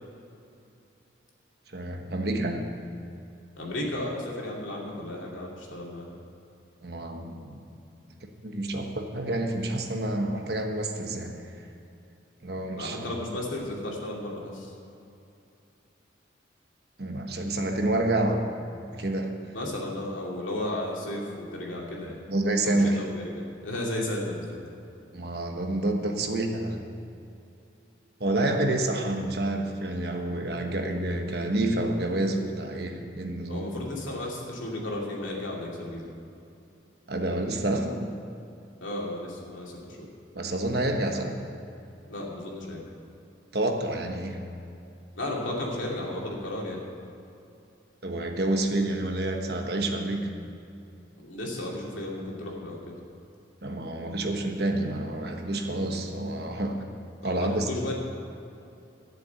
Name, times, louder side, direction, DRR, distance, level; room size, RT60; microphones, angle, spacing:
voice 1, 1.7-2.7 6.8-7.6 8.4-11.5 12.4-13.0 17.0-18.5 18.9-19.4 22.3-23.0 25.1-26.8 28.2-33.7 37.1-38.1 40.3-41.5 43.5-44.5 48.0-50.4 53.6-56.9 57.2-57.7, right 1 dB, 55° right, 3 dB, 1.2 m, -28 dB
voice 2, 3.6-6.1 12.7-14.7 19.5-22.2 22.6-24.6 33.5-36.1 38.8-40.1 42.1-42.9 45.1-46.8 51.2-52.9 57.2-57.9, left 1 dB, 90° left, -3 dB, 2.8 m, -34 dB
12.5 x 7.1 x 8.2 m, 2.7 s
head